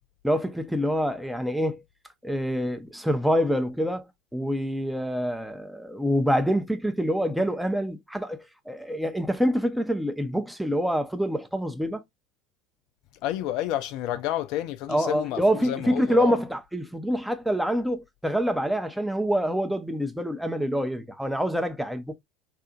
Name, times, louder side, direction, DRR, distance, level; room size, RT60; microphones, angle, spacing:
voice 1, 0.2-1.8 2.2-12.0 14.9-22.2, equal, ahead, 0.6 m, -26 dB
voice 2, 13.2-16.4, left 13 dB, 55° left, 0.3 m, -30 dB
2.7 x 2.4 x 2.4 m
figure-of-eight pair, 70°, 0 cm